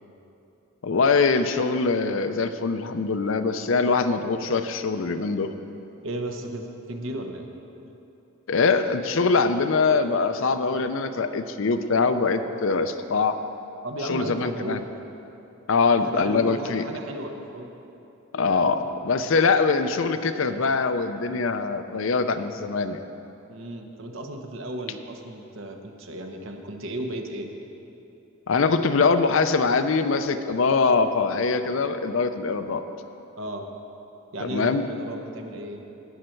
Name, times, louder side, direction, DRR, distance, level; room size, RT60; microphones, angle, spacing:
voice 1, 0.8-5.5 8.5-13.3 14.0-14.8 15.7-16.8 18.3-23.1 28.5-32.8 34.5-34.8, left 4 dB, 60° left, 9 dB, 0.5 m, -23 dB
voice 2, 6.0-7.5 13.8-14.8 15.9-17.7 23.5-27.5 33.4-33.7 34.3-35.8, right 1 dB, 65° right, 4 dB, 0.9 m, -35 dB
17.0 x 6.5 x 4.5 m, 2.9 s
head